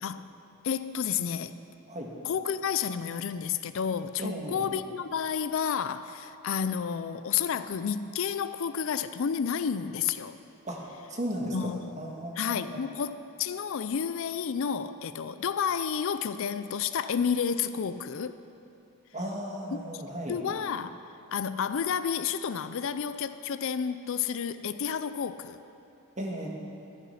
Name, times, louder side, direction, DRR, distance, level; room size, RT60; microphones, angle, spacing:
voice 1, 0.6-1.6 2.2-10.4 11.4-11.9 12.4-18.4 19.7-20.0 20.3-21.0 21.3-25.6, left 7 dB, 60° left, 12 dB, 0.4 m, -31 dB
voice 2, 4.2-4.7 10.6-10.8 11.1-12.8 19.1-20.4 26.2-26.5, right 1 dB, 35° right, -1 dB, 1.7 m, -35 dB
13.0 x 10.0 x 5.7 m, 2.6 s
head